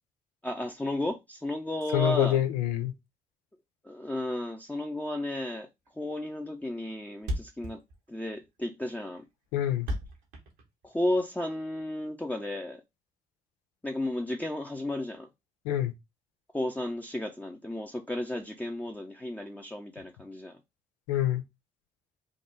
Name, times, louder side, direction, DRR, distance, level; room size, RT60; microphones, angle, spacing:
voice 1, 0.4-2.4 3.8-5.7 6.0-7.8 8.1-9.2 10.8-12.8 13.8-15.3 16.5-20.6, left 1 dB, 10° left, 0.6 m, -33 dB
voice 2, 1.9-2.9 9.5-9.9 15.6-15.9 21.1-21.4, left 12 dB, 85° left, 0.6 m, -26 dB
Thump thud, 5.8-6.0 6.3-6.4 6.6-6.7 6.9-7.0 7.2-11.2, equal, 80° right, 1.2 m, -36 dB
3.6 x 2.3 x 4.0 m
hypercardioid pair, 45°, 18 cm